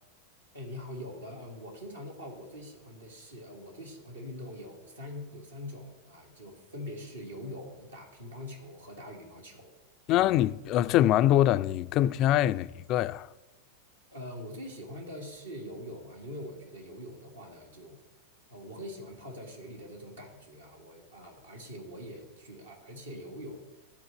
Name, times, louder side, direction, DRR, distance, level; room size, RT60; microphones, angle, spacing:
voice 1, 0.5-9.7 10.2-10.3 14.1-18.0 18.5-23.6, left 1 dB, 75° right, 2.0 m, -43 dB
voice 2, 10.1-13.3, left 13 dB, 40° left, 0.3 m, -24 dB
12.5 x 4.5 x 7.3 m
figure-of-eight pair, 90°, 0 cm